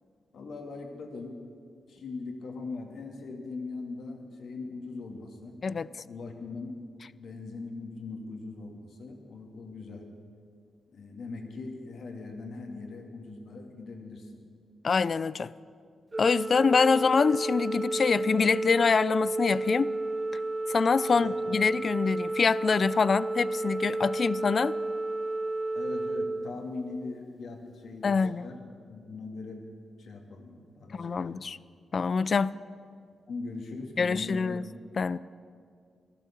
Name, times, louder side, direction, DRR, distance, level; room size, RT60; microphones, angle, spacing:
voice 1, 0.3-1.4 1.9-5.6 6.0-6.8 7.1-10.1 10.9-14.4 21.1-21.6 25.7-28.6 28.9-29.6 30.0-31.4 33.3-34.6, left 3 dB, 70° left, 3 dB, 2.1 m, -40 dB
voice 2, 14.8-15.5 16.2-19.9 20.7-24.7 28.0-28.5 30.9-31.6 31.9-32.6 34.0-34.6 35.0-35.2, left 5 dB, 50° left, 18 dB, 0.4 m, -25 dB
Organ, 16.1-27.2, right 2 dB, 30° right, 0.3 m, -32 dB
14.0 x 12.0 x 7.2 m, 2.2 s
supercardioid pair, 50°, 0 cm